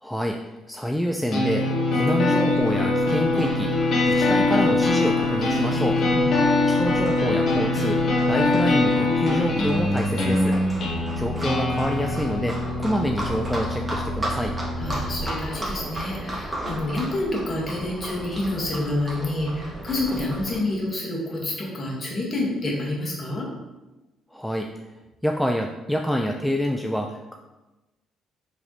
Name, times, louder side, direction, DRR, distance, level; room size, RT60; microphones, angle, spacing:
voice 1, 0.0-3.7 4.1-6.0 6.7-10.6 11.2-14.5 24.3-24.8 25.2-27.3, equal, 5° left, 2 dB, 0.3 m, -27 dB
sound 1, 1.3-15.3, left 2 dB, 60° left, 1.1 m, -23 dB
Livestock farm animals working animals, 2.5-20.6, right 1 dB, 15° right, 1.3 m, -36 dB
voice 2, 6.0-6.3 14.8-23.5, left 2 dB, 40° left, -3 dB, 1.4 m, -28 dB
4.6 x 3.3 x 2.9 m, 1.1 s
supercardioid pair, 75°, 0 cm